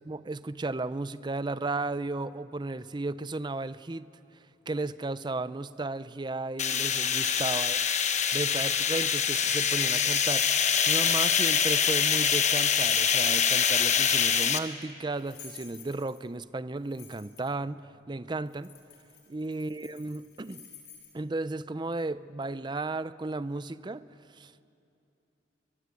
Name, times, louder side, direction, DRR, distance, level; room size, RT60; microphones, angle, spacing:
voice 1, 0.1-4.1 4.7-7.8 8.3-18.7 19.3-20.6 21.1-24.1 24.4-24.6, right 2 dB, 25° right, 0.5 m, -34 dB
sound 1, 6.6-14.6, left 7 dB, 40° left, 1.1 m, -25 dB
sound 2, 9.7-14.5 15.1-16.4 16.8-17.5 18.5-21.1, left 8 dB, 60° left, 4.4 m, -53 dB
24.0 x 23.5 x 8.2 m
head